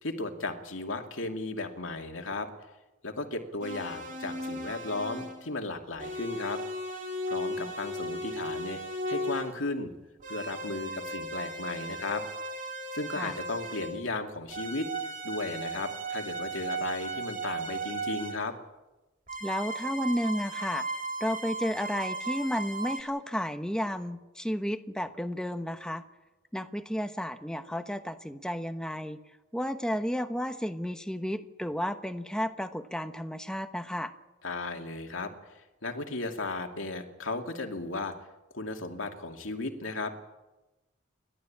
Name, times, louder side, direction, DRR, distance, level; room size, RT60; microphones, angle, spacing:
voice 1, 0.0-2.5 3.0-6.6 7.3-8.8 9.1-9.9 10.3-12.2 12.9-14.9 15.2-18.5 34.4-38.1 38.5-40.1, left 2 dB, 85° left, 4 dB, 2.5 m, -35 dB
sound 1, 3.6-5.5 6.0-9.6 10.2-14.1 14.5-18.4 19.3-23.0, right 1 dB, 40° right, 2.9 m, -36 dB
voice 2, 19.4-20.8 21.2-26.0 26.5-29.2 29.5-34.1, equal, 5° left, 8 dB, 1.0 m, -32 dB
29.5 x 12.5 x 8.7 m, 1.1 s
head